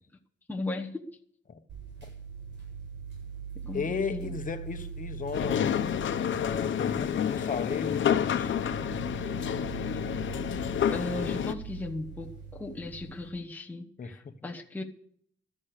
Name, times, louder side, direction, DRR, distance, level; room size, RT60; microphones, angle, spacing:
voice 1, 0.5-1.0 3.5-4.3 9.9-10.1 10.9-14.8, left 2 dB, 10° left, 1.1 m, -37 dB
sound 1, 1.7-13.3, right 6 dB, 70° right, 7.8 m, -42 dB
voice 2, 3.7-5.8 6.4-8.8 14.0-14.3, left 5 dB, 40° left, 1.3 m, -35 dB
sound 2, 5.3-11.5, left 9 dB, 75° left, 0.9 m, -29 dB
13.5 x 11.0 x 6.6 m
wide cardioid pair, 170°, 20 cm